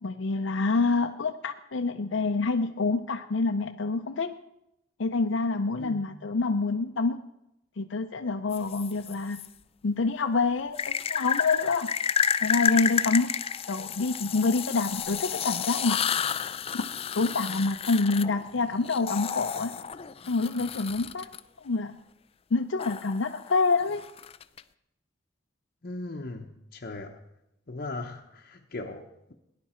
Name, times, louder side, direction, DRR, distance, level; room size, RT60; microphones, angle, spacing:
voice 1, 0.0-4.3 5.0-7.2 7.8-9.4 9.8-11.9 12.4-13.3 13.7-16.0 16.7-16.8 17.1-19.7 20.3-21.3 21.6-22.0 22.5-24.0, left 3 dB, 75° left, 5 dB, 0.6 m, -27 dB
voice 2, 5.8-6.1 25.8-26.5 26.7-27.2 27.7-29.3, left 2 dB, 50° left, 2 dB, 0.8 m, -38 dB
sound 1, 8.5-9.5 10.8-21.4 22.8-24.6, left 8 dB, 30° left, 0.4 m, -31 dB
18.0 x 10.5 x 4.4 m, 0.86 s
head